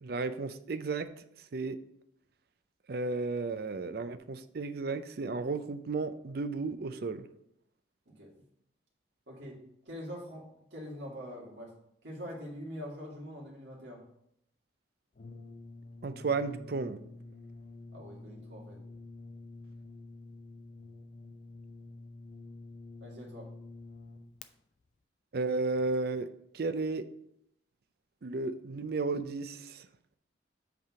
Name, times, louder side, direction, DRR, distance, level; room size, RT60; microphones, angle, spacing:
voice 1, 0.0-1.1 1.5-1.8 2.9-7.3 16.0-17.0 25.3-26.3 26.5-27.1 28.2-29.9, right 3 dB, 55° right, 11 dB, 0.4 m, -33 dB
voice 2, 9.3-11.7 12.0-14.0 17.9-18.8 23.0-23.5, equal, 75° right, -2 dB, 2.0 m, -44 dB
Brass instrument, 15.2-24.5, left 2 dB, 40° left, 0.4 m, -49 dB
7.9 x 3.5 x 4.8 m, 0.74 s
head